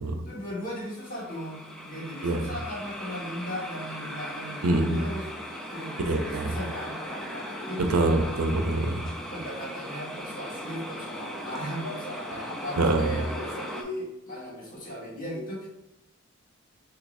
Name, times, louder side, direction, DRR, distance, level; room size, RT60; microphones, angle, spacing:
voice 1, 0.2-5.3 5.7-8.1 9.3-15.7, equal, 40° left, -5 dB, 1.4 m, -37 dB
sound 1, 0.8-13.8, equal, ahead, 0.4 m, -38 dB
voice 2, 4.6-5.1 6.1-6.6 7.9-9.0 12.8-13.1, right 2 dB, 90° right, 5 dB, 0.5 m, -25 dB
6.3 x 2.9 x 2.6 m, 0.90 s
head